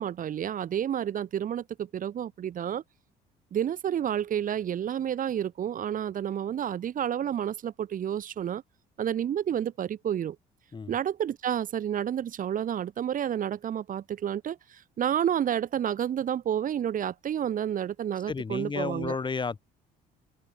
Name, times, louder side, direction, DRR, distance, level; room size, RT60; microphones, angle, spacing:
voice 1, 0.0-2.8 3.5-8.6 9.0-10.4 10.9-19.1, right 10 dB, 55° right, 5.0 m, -30 dB
voice 2, 18.3-19.6, left 5 dB, 25° left, 7.3 m, -32 dB
cardioid pair, 110°, 17 cm